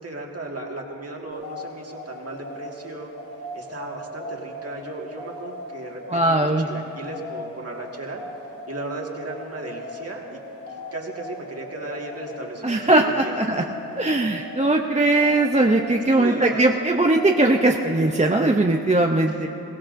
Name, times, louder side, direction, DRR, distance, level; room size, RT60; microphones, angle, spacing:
voice 1, 0.0-3.1 3.5-8.2 8.7-10.4 10.7-13.3 16.1-16.7 19.3-19.5, right 2 dB, 40° right, -1 dB, 1.9 m, -35 dB
sound 1, 1.3-18.6, left 1 dB, 60° left, 2.7 m, -39 dB
voice 2, 6.1-6.7 12.6-13.6 13.9-19.5, right 2 dB, 20° right, 2 dB, 0.6 m, -20 dB
22.0 x 17.5 x 2.6 m, 2.9 s
wide cardioid pair, 75°, 36 cm